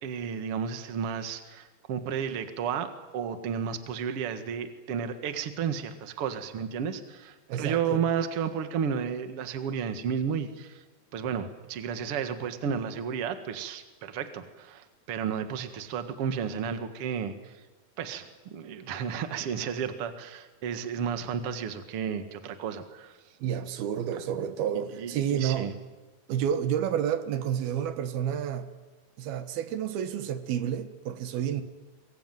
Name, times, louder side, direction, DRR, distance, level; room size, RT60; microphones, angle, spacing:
voice 1, 0.0-10.8 11.1-17.5 18.0-23.1 24.1-24.2 24.9-25.7, right 7 dB, 50° right, 2.1 m, -32 dB
voice 2, 7.5-8.0 23.4-25.7 26.3-28.7 29.2-31.6, right 9 dB, 85° right, 3.3 m, -30 dB
25.0 x 22.0 x 9.3 m
omnidirectional pair, 4.3 m